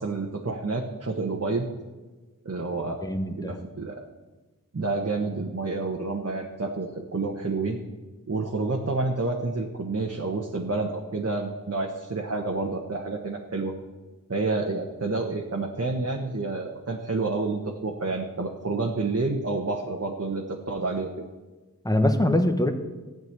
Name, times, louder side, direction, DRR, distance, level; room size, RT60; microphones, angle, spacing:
voice 1, 0.0-1.7 2.4-3.1 3.3-4.0 4.7-7.8 8.3-13.7 14.3-21.2, right 3 dB, 45° right, 1 dB, 1.3 m, -29 dB
voice 2, 3.0-3.6 21.8-22.7, left 1 dB, 10° left, 6 dB, 1.4 m, -23 dB
15.0 x 5.3 x 9.6 m, 1.2 s
wide cardioid pair, 55°, 34 cm